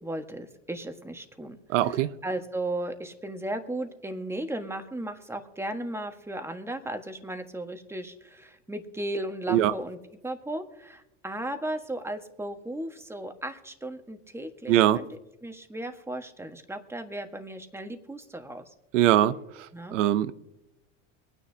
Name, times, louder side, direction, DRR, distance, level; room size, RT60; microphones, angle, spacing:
voice 1, 0.0-10.0 10.2-18.6 19.7-20.0, right 1 dB, 5° right, 1.5 m, -36 dB
voice 2, 1.7-2.1 9.5-9.7 14.7-15.0 18.9-19.4 19.9-20.3, right 12 dB, 80° right, 0.8 m, -21 dB
23.0 x 9.7 x 2.8 m
hypercardioid pair, 95°, 37 cm